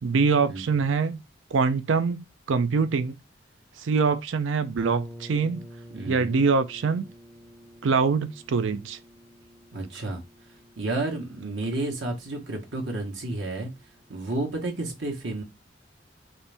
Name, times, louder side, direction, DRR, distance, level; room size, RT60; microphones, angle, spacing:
voice 1, 0.0-1.2 1.5-3.2 3.8-5.6 6.1-7.1 7.8-9.0, right 5 dB, 90° right, 0.5 m, -24 dB
sound 1, 4.8-14.4, equal, 10° left, 0.5 m, -48 dB
voice 2, 5.9-6.4 9.7-10.2 10.8-13.7 14.1-15.4, right 2 dB, 70° right, 1.2 m, -31 dB
4.4 x 2.6 x 3.3 m
head